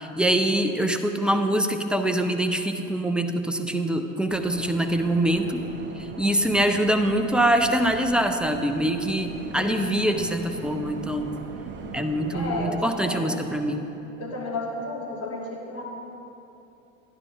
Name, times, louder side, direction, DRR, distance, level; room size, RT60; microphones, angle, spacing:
voice 1, 0.0-5.6 6.0-11.3 11.9-13.8, right 1 dB, ahead, 6 dB, 0.5 m, -24 dB
sound 1, 4.3-12.7, right 4 dB, 30° right, 0.9 m, -40 dB
voice 2, 9.6-10.0 12.3-13.3 14.2-15.8, left 2 dB, 35° left, -4 dB, 2.6 m, -32 dB
12.0 x 11.0 x 3.6 m, 2.9 s
figure-of-eight pair, 70°, 40 cm